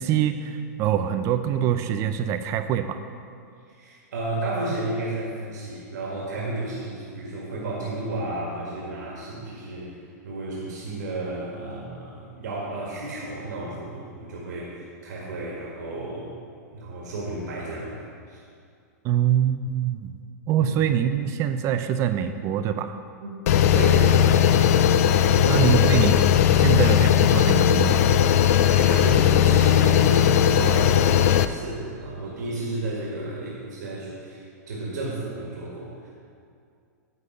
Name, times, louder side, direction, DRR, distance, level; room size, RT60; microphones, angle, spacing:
voice 1, 0.0-3.0 19.0-20.1 20.5-22.9 25.5-26.3 26.6-28.0, right 9 dB, 30° right, 9 dB, 0.4 m, -24 dB
voice 2, 3.7-10.0 10.2-16.3 16.7-18.4 20.6-20.7 23.2-23.3 23.7-24.8 25.4-25.7 28.3-36.1, right 2 dB, 80° right, -4 dB, 1.8 m, -32 dB
sound 1, 23.5-31.5, left 10 dB, 60° left, 0.4 m, -18 dB
10.0 x 4.0 x 6.6 m, 2.4 s
hypercardioid pair, 140°, 9 cm